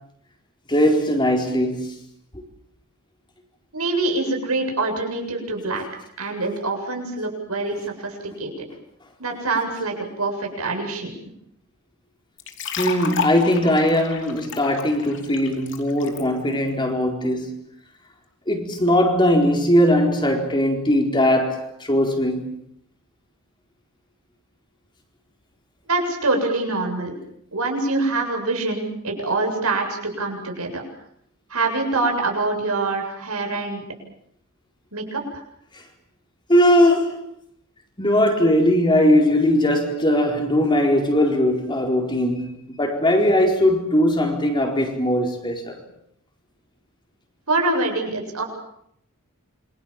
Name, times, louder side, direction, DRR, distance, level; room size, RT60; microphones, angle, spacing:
voice 1, 0.7-2.0 2.3-2.4 12.8-17.6 18.5-22.6 35.7-35.8 36.5-37.2 38.0-45.8, left 1 dB, 20° left, 4.4 m, -19 dB
voice 2, 3.7-5.8 6.2-8.5 9.2-11.1 25.9-27.1 27.5-30.8 31.5-33.8 34.9-35.4 47.5-48.4, right 3 dB, 75° right, 7.8 m, -25 dB
sound 1, 12.4-16.2, left 6 dB, 55° left, 3.4 m, -31 dB
28.0 x 25.0 x 7.4 m
head